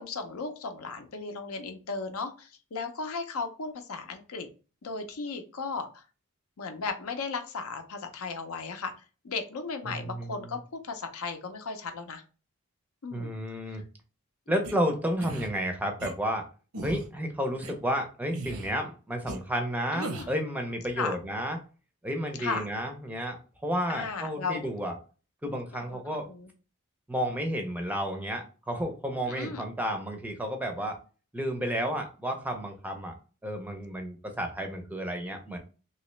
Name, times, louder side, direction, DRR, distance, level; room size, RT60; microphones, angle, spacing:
voice 1, 0.0-4.5 4.8-6.0 6.6-8.9 9.2-12.2 13.0-13.4 13.7-13.8 17.6-17.8 19.9-20.3 21.0-21.2 22.4-22.7 23.9-24.7 25.7-26.5 29.2-29.6, left 4 dB, 75° left, 7 dB, 0.6 m, -36 dB
voice 2, 9.9-10.5 13.1-13.8 14.5-16.5 16.8-21.6 22.0-23.4 23.6-24.9 25.4-26.3 27.1-31.0 31.3-33.1 33.4-35.6, equal, 5° right, 4 dB, 0.5 m, -31 dB
sound 1, 14.6-14.7 15.2-15.5 16.0-16.1 16.7-17.1 17.6-17.7 18.3-18.7 19.3-19.4 20.0-20.4, right 2 dB, 80° right, 0.7 m, -37 dB
3.1 x 2.8 x 3.1 m, 0.35 s
head